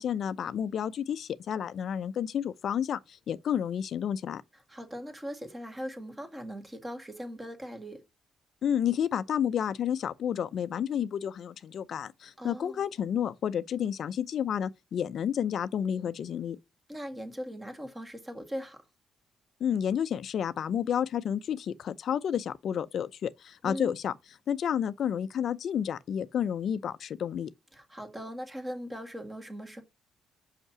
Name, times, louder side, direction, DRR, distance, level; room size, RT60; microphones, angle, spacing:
voice 1, 0.0-4.4 8.6-16.6 19.6-24.1 24.5-27.5, left 9 dB, 60° left, 0.5 m, -30 dB
voice 2, 4.7-8.0 12.4-12.8 16.9-18.8 23.6-23.9 27.7-29.8, equal, 15° right, 1.8 m, -40 dB
5.9 x 5.4 x 5.8 m
cardioid pair, 120°, 0 cm